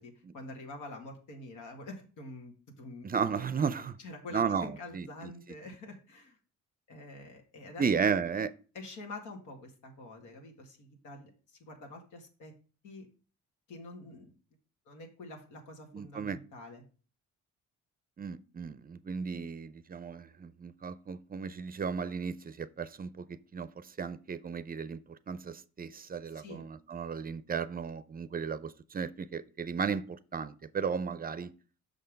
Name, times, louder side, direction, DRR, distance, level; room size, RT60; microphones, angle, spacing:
voice 1, 0.0-3.1 4.0-6.4 6.9-7.8 8.7-12.5 12.8-13.1 13.7-14.4 14.9-16.8 26.3-26.6, left 2 dB, 85° left, 2.1 m, -46 dB
voice 2, 3.0-4.0 4.3-5.1 7.8-8.5 15.9-16.4 18.2-23.3 23.5-31.5, right 6 dB, 30° right, 0.5 m, -34 dB
6.3 x 5.6 x 5.1 m
cardioid pair, 90°, 30 cm